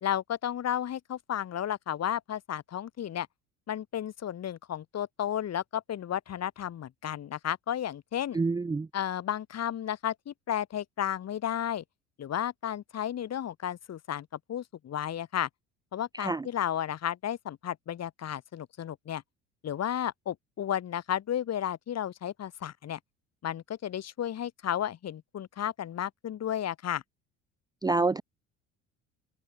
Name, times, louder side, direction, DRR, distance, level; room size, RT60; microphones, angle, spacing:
voice 1, 0.0-3.3 3.7-8.4 8.9-11.8 12.2-15.5 15.9-19.2 19.6-23.0 23.4-27.0, left 10 dB, 40° left, 2.3 m, -33 dB
voice 2, 8.3-8.9 16.2-16.4 27.8-28.2, right 3 dB, 10° right, 0.6 m, -27 dB
open air
hypercardioid pair, 65°, 38 cm